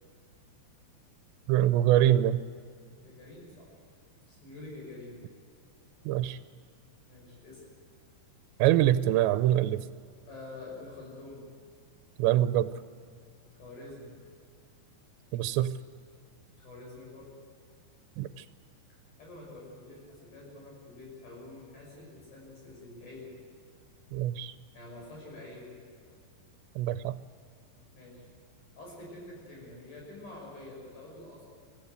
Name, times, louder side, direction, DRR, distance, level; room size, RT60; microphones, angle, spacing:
voice 1, 1.5-2.4 6.1-6.4 8.6-9.8 12.2-12.7 15.3-15.7 18.2-18.3 24.1-24.5 26.8-27.2, right 13 dB, 80° right, 12 dB, 2.8 m, -24 dB
voice 2, 3.0-3.7 4.3-5.2 7.1-7.6 10.3-11.5 13.5-14.1 16.6-17.3 18.9-23.3 24.7-25.7 28.0-28.2 28.7-31.5, left 2 dB, 55° left, -3 dB, 7.8 m, -47 dB
24.5 x 15.0 x 8.1 m, 2.2 s
omnidirectional pair, 5.1 m